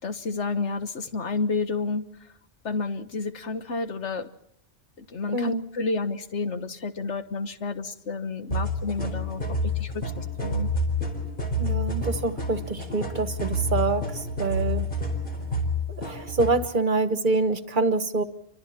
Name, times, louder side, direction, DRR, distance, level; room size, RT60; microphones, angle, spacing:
voice 1, 0.0-2.1 2.6-4.3 5.0-10.7, left 4 dB, 70° left, 9 dB, 1.7 m, -30 dB
voice 2, 5.3-5.6 11.6-14.9 15.9-18.2, right 3 dB, 45° right, 10 dB, 1.4 m, -26 dB
sound 1, 8.5-16.6, left 1 dB, 45° left, 4.4 m, -29 dB
29.0 x 24.5 x 4.3 m, 0.75 s
omnidirectional pair, 1.2 m